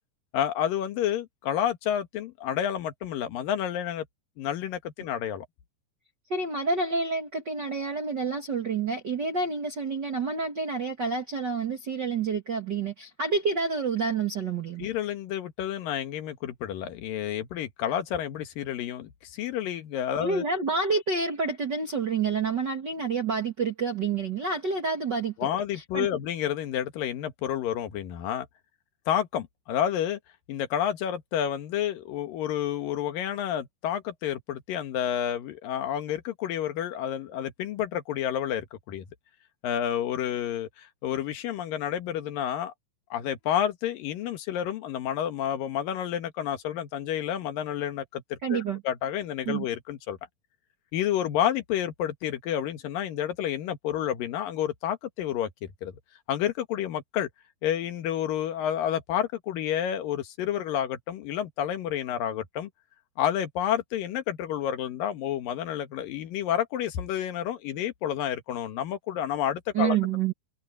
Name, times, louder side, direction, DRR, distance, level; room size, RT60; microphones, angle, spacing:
voice 1, 0.3-4.1 4.4-5.5 14.8-20.4 25.4-28.5 29.1-30.2 30.5-39.0 39.6-42.7 43.1-48.6 48.8-50.2 50.9-55.9 56.3-57.3 57.6-62.7 63.2-70.0, left 10 dB, 65° left, 3.0 m, -30 dB
voice 2, 6.3-14.9 20.2-25.5 25.7-26.1 48.4-48.8 49.4-49.6 69.7-70.3, right 4 dB, 45° right, 1.5 m, -28 dB
omnidirectional pair, 4.5 m